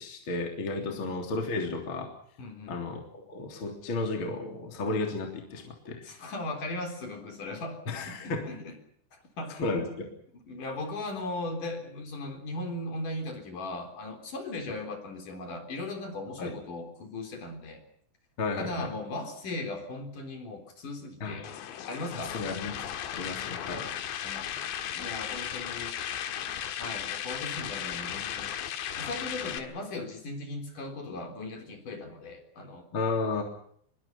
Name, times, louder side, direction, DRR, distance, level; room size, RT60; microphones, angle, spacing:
voice 1, 0.0-2.1 2.7-6.2 7.9-8.5 9.6-10.1 14.7-14.8 16.4-16.5 18.4-18.9 21.2-21.5 22.1-22.8 23.1-23.9 32.9-33.4, left 3 dB, 30° left, 3 dB, 3.7 m, -33 dB
voice 2, 2.4-2.8 6.0-7.8 8.1-8.7 9.1-9.6 10.5-17.8 18.6-21.5 21.9-22.4 24.2-26.1 26.8-28.5 29.0-32.9, left 2 dB, 50° left, 4 dB, 5.2 m, -38 dB
sound 1, 21.4-29.6, left 10 dB, 85° left, 4.1 m, -36 dB
25.0 x 23.0 x 5.8 m, 0.64 s
omnidirectional pair, 5.0 m